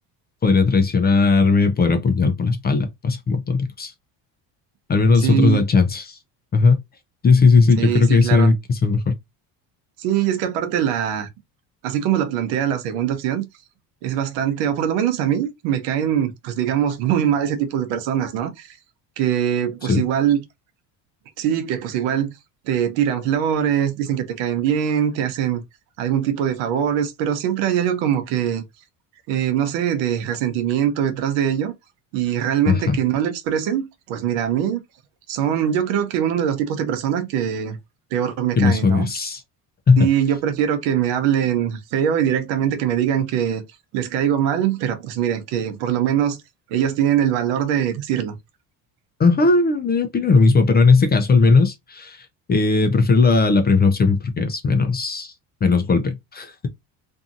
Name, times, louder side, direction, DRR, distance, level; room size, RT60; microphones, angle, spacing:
voice 1, 0.4-3.9 4.9-6.2 6.5-6.8 7.2-9.1 19.9-20.0 32.7-33.0 38.6-39.4 39.9-40.1 49.2-55.3 55.6-56.5, left 4 dB, 25° left, 0.4 m, -17 dB
voice 2, 5.1-5.6 7.8-8.5 10.0-11.3 11.8-13.4 14.0-18.8 19.2-20.4 21.4-22.3 22.7-25.6 26.0-28.6 29.3-31.7 32.1-34.8 35.3-37.8 38.1-39.1 40.0-43.6 43.9-46.4 46.7-48.4, right 9 dB, 85° right, 0.8 m, -22 dB
2.6 x 2.6 x 2.4 m
supercardioid pair, 100°, 44 cm